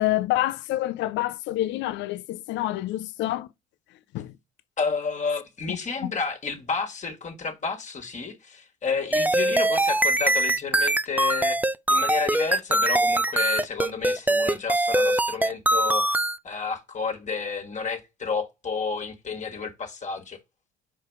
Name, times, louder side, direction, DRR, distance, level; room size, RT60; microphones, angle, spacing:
voice 1, 0.0-3.5 4.1-4.3 5.7-5.8, left 15 dB, 75° left, 0.6 m, -27 dB
voice 2, 4.8-11.6 11.9-20.4, left 5 dB, 40° left, 1.6 m, -31 dB
sound 1, 9.1-16.4, right 1 dB, 10° right, 0.5 m, -22 dB
5.0 x 4.6 x 4.5 m
supercardioid pair, 65°, 19 cm